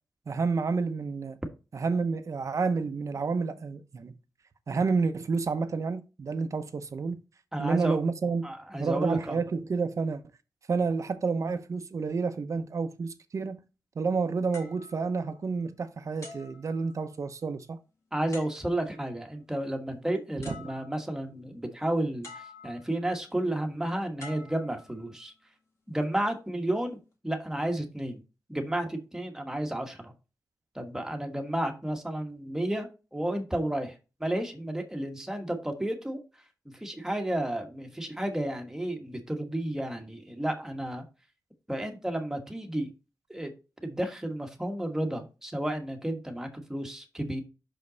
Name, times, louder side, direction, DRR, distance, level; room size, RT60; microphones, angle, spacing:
voice 1, 0.3-1.4 1.7-4.1 4.7-7.2 7.6-8.5 8.8-10.2 10.7-13.6 14.0-17.8 20.5-20.6, right 4 dB, 50° right, 0.8 m, -29 dB
voice 2, 7.5-8.0 8.4-9.4 18.1-25.3 25.9-27.0 27.2-28.2 28.5-30.1 30.7-33.9 34.2-36.2 36.8-41.0 41.7-42.9 43.3-43.5 43.8-47.4, right 1 dB, 5° right, 1.3 m, -32 dB
sound 1, 14.5-15.7 16.2-17.4 18.3-19.0 20.1-20.2 20.4-21.2 22.2-23.0 24.2-25.3 26.0-26.3, left 3 dB, 45° left, 2.1 m, -49 dB
5.9 x 5.4 x 3.9 m
wide cardioid pair, 155°, 7 cm